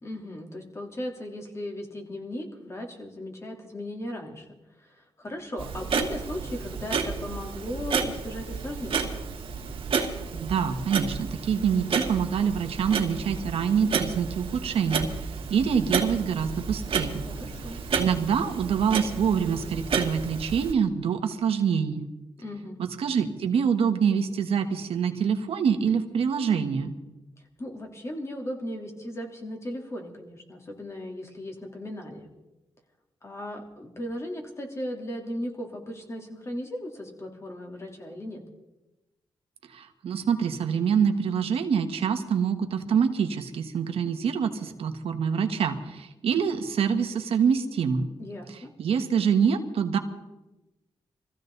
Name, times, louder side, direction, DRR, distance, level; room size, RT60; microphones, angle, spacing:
voice 1, 0.0-4.5 4.8-9.1 17.3-17.8 22.4-22.8 27.4-32.3 33.2-38.4 48.2-48.7, left 1 dB, 30° left, 2 dB, 3.3 m, -37 dB
Clock, 5.6-20.7, right 5 dB, 70° right, 2.3 m, -31 dB
voice 2, 10.3-15.1 15.5-17.2 18.0-22.0 22.8-26.9 39.7-48.1 48.8-50.0, right 7 dB, 90° right, 7 dB, 1.5 m, -25 dB
23.5 x 15.0 x 4.0 m, 1.0 s
cardioid pair, 105°, 10 cm